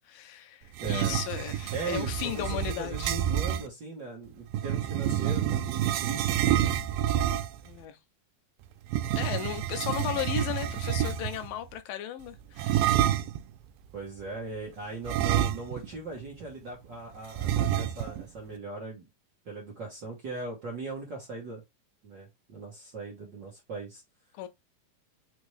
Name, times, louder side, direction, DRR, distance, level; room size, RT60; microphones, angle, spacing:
voice 1, 0.0-3.1 7.6-8.0 9.2-12.8 24.3-24.5, left 11 dB, 90° left, 2.4 m, -35 dB
sound 1, 0.7-3.7 4.5-7.7 8.9-11.5 12.6-13.4 15.1-16.0 16.3-16.4 17.4-18.2, right 11 dB, 85° right, 2.3 m, -28 dB
voice 2, 0.8-1.2 1.7-6.8 13.9-19.1 19.4-21.6 22.0-24.0, right 3 dB, 50° right, 1.3 m, -39 dB
5.9 x 2.7 x 3.1 m
omnidirectional pair, 3.9 m